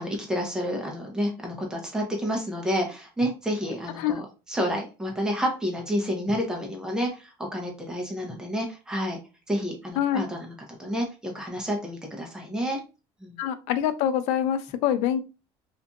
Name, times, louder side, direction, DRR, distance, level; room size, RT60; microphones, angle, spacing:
voice 1, 0.0-4.2 4.5-9.2 9.5-10.5 10.8-12.8 13.2-13.4, equal, 5° right, 0 dB, 0.8 m, -29 dB
voice 2, 13.4-15.2, left 10 dB, 75° left, 11 dB, 0.4 m, -25 dB
2.6 x 2.6 x 2.2 m, 0.31 s
cardioid pair, 130°, 12 cm